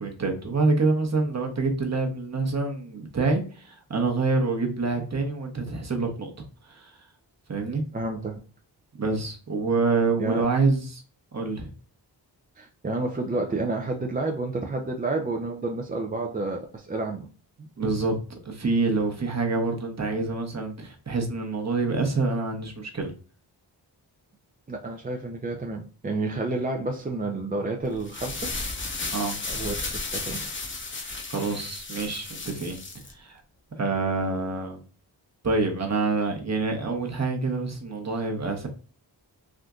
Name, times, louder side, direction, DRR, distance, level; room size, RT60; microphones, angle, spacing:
voice 1, 0.0-6.3 6.7-6.9 7.5-7.8 9.0-11.0 11.3-11.7 17.8-23.1 29.1-29.4 31.3-32.8 33.1-33.4 33.7-34.8 35.4-38.7, right 3 dB, 35° right, 3 dB, 0.9 m, -26 dB
voice 2, 7.9-8.4 10.2-10.4 12.6-17.3 24.7-28.5 29.5-30.4, right 2 dB, 20° right, 2 dB, 0.4 m, -30 dB
sound 1, 27.9-33.1, left 3 dB, 25° left, 0.8 m, -34 dB
3.6 x 2.6 x 2.3 m, 0.38 s
cardioid pair, 50°, 44 cm